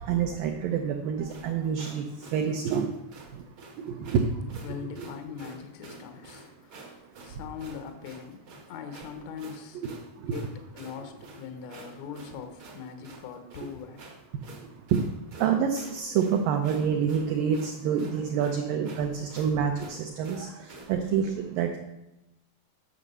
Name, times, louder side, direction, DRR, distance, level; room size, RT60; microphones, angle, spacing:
voice 1, 0.0-2.0 2.3-3.0 3.9-4.2 10.3-10.4 14.9-15.0 15.4-20.5 20.9-21.8, right 7 dB, 90° right, 4 dB, 1.9 m, -27 dB
sound 1, 1.3-21.0, right 3 dB, 70° right, 1.2 m, -48 dB
voice 2, 4.6-9.8 10.3-14.0 18.4-18.5, left 7 dB, 80° left, 6 dB, 1.6 m, -41 dB
9.6 x 6.1 x 6.7 m, 0.95 s
omnidirectional pair, 5.0 m